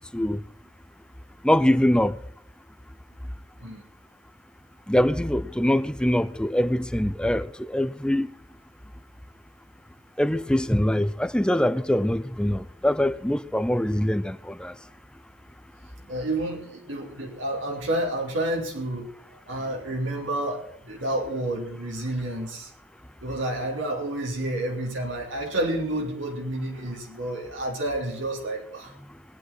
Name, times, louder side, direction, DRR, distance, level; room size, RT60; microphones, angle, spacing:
voice 1, 1.4-2.2 4.9-8.3 10.2-14.8, left 1 dB, 5° left, 0.5 m, -23 dB
voice 2, 16.1-19.1 19.5-22.7 23.2-28.9, right 1 dB, 85° right, 3.6 m, -30 dB
21.0 x 9.9 x 4.4 m
head